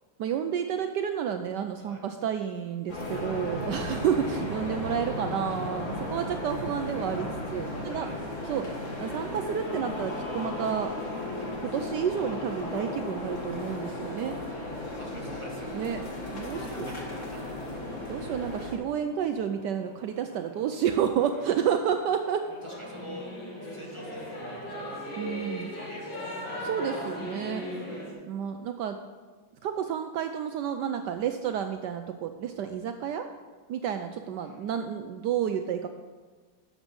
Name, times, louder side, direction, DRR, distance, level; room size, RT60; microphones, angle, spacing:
voice 1, 0.2-8.1 8.5-8.7 9.0-10.9 11.6-14.4 15.7-16.0 16.3-16.9 18.0-22.4 25.2-25.8 26.6-27.7 28.3-29.0 29.6-33.3 33.7-35.9, right 8 dB, 70° right, 7 dB, 1.1 m, -30 dB
sound 1, 2.9-18.7, left 2 dB, 40° left, 2.1 m, -35 dB
sound 2, 7.5-25.0, right 2 dB, 55° right, 2.4 m, -52 dB
voice 2, 7.7-8.2 14.5-15.8 16.4-17.8 19.0-19.1 21.2-21.4 22.5-23.3 23.6-24.9 25.6-26.3 27.5-28.0 34.2-34.7, equal, 15° left, -2 dB, 1.6 m, -49 dB
Singing / Musical instrument, 22.6-28.1, left 1 dB, 80° left, 3.2 m, -37 dB
11.5 x 7.4 x 5.3 m, 1.4 s
omnidirectional pair, 2.1 m